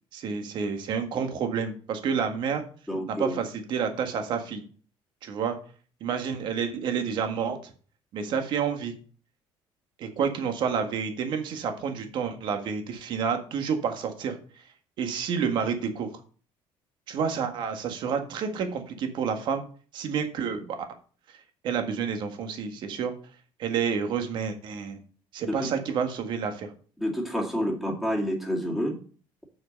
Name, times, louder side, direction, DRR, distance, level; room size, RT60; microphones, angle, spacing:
voice 1, 0.1-2.6 3.2-4.6 5.2-5.5 6.0-7.7 8.1-8.9 10.0-14.4 15.0-16.1 17.1-19.6 19.9-20.8 21.6-23.1 23.6-25.0 25.3-26.7, right 6 dB, 50° right, 6 dB, 1.7 m, -29 dB
voice 2, 2.9-3.4 25.5-25.7 27.0-29.0, equal, ahead, -1 dB, 2.2 m, -29 dB
7.4 x 6.0 x 5.3 m, 0.41 s
cardioid pair, 160°, 10 cm